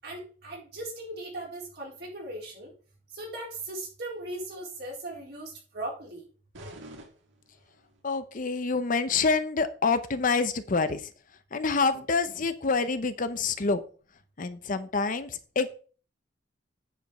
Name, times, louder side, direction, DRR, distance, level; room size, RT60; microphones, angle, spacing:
voice 1, 0.0-2.7 3.1-6.2, right 1 dB, 60° right, -2 dB, 4.2 m, -38 dB
sound 1, 6.5-8.0, right 1 dB, 85° right, 1.8 m, -47 dB
voice 2, 8.0-11.1 11.5-13.8 14.4-15.7, left 4 dB, 45° left, 11 dB, 0.7 m, -27 dB
9.2 x 5.1 x 5.2 m, 0.39 s
head